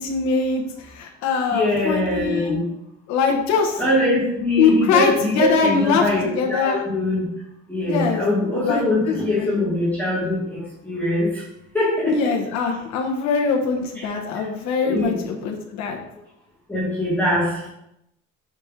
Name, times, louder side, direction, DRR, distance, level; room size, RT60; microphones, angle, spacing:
voice 1, 0.0-2.5 3.1-3.8 4.6-6.8 7.9-8.2 8.5-9.5 12.0-16.0, left 5 dB, 65° left, 1 dB, 1.1 m, -22 dB
voice 2, 1.5-2.6 3.8-7.2 7.7-11.4 11.7-12.3 14.8-15.2 16.7-17.7, left 1 dB, 5° left, -9 dB, 1.7 m, -22 dB
5.2 x 4.3 x 4.9 m, 0.82 s
cardioid pair, 165°, 30 cm